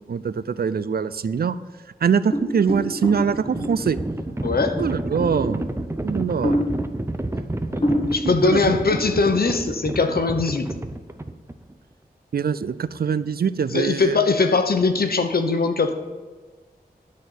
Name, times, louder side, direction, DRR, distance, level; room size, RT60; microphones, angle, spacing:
voice 1, 0.1-1.6 2.0-4.0 4.8-5.6 6.0-6.6 8.2-8.6 12.3-14.2, right 6 dB, 70° right, 15 dB, 0.4 m, -23 dB
sound 1, 2.3-4.1 4.7-5.8 6.4-7.1 7.5-7.6 7.8-8.4 8.8-9.1, equal, 30° left, 1.9 m, -27 dB
Livestock farm animals working animals, 2.7-11.7, right 1 dB, 15° right, 0.6 m, -30 dB
voice 2, 4.4-4.7 7.7-7.8 8.1-10.7 13.7-15.9, left 4 dB, 70° left, 7 dB, 1.0 m, -21 dB
11.5 x 4.3 x 7.9 m, 1.4 s
wide cardioid pair, 90°, 16 cm